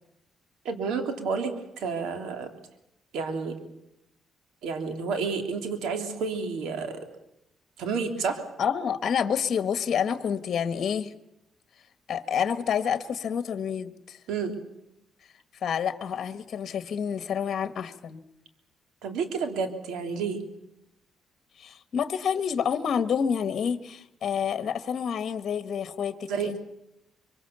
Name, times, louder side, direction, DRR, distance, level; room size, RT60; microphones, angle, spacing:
voice 1, 0.6-2.5 3.1-3.6 4.6-7.0 7.8-8.4 14.3-14.5 19.0-20.4 26.3-26.6, right 5 dB, 85° right, 6 dB, 3.4 m, -30 dB
voice 2, 8.6-11.1 12.1-14.2 15.6-18.2 21.6-26.6, left 7 dB, 55° left, 11 dB, 1.5 m, -28 dB
24.5 x 24.0 x 7.0 m, 0.83 s
cardioid pair, 90°, 0 cm